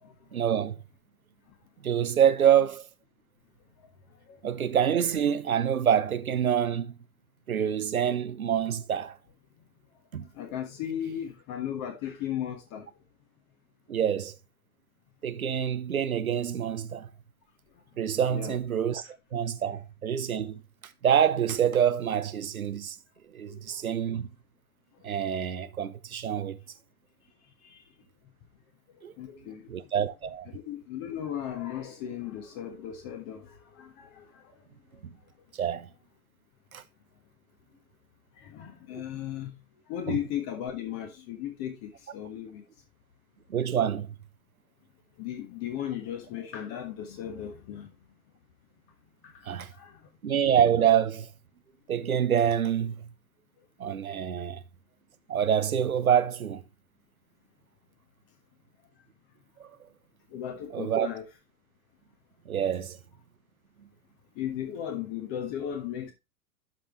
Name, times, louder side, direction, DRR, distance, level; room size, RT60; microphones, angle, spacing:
voice 1, 0.3-0.8 1.8-2.8 4.4-6.9 7.5-9.2 10.1-10.3 13.9-14.3 15.2-17.1 18.0-20.6 21.0-23.0 23.3-24.3 25.0-26.6 29.0-29.1 29.7-30.5 35.6-35.9 36.7-36.8 38.9-39.0 40.1-40.2 43.5-44.1 49.5-49.7 50.2-51.3 51.9-53.1 53.8-54.6 55.3-56.6 59.6-59.7 60.7-61.1 62.5-63.0, right 9 dB, 70° right, 1.0 m, -26 dB
voice 2, 10.4-12.9 18.3-18.6 23.4-23.5 29.2-29.7 30.5-33.5 33.8-34.2 38.4-39.5 39.9-42.6 45.2-47.9 49.2-49.3 49.8-50.0 60.3-61.2 64.4-66.1, left 10 dB, 35° left, 1.4 m, -36 dB
11.5 x 5.2 x 3.1 m
figure-of-eight pair, 100°, 43 cm